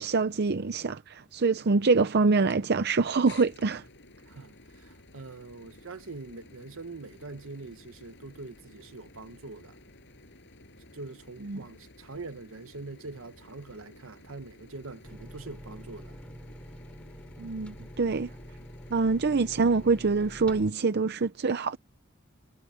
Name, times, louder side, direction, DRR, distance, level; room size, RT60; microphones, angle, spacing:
voice 1, 0.0-3.8 11.4-11.6 17.4-18.3 18.9-21.8, right 4 dB, 55° right, 0.6 m, -25 dB
sound 1, 2.5-2.6 3.3-20.5, left 2 dB, 60° left, 8.0 m, -54 dB
voice 2, 4.3-9.7 10.9-16.2, right 3 dB, 70° right, 1.1 m, -43 dB
sound 2, 15.0-20.7, equal, 5° left, 2.9 m, -46 dB
head